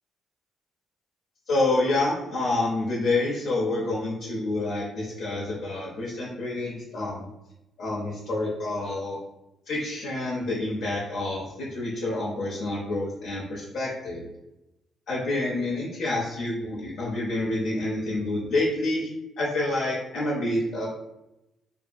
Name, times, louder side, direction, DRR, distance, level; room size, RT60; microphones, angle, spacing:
voice 1, 1.5-7.3 7.8-9.2 9.7-14.3 15.1-19.1 19.4-20.9, left 2 dB, 80° left, -5 dB, 0.5 m, -28 dB
2.7 x 2.5 x 2.3 m, 0.90 s
cardioid pair, 90°, 0 cm